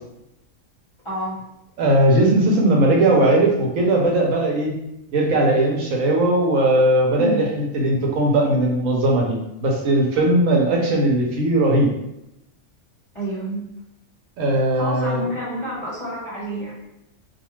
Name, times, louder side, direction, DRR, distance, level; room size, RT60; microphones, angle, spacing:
voice 1, 1.0-1.4 7.2-7.4 13.1-13.6 14.7-16.7, right 1 dB, 25° left, -9 dB, 0.9 m, -28 dB
voice 2, 1.8-4.7 5.1-11.9 14.4-15.3, right 1 dB, 85° right, -1 dB, 1.1 m, -18 dB
2.4 x 2.3 x 3.0 m, 0.85 s
omnidirectional pair, 1.3 m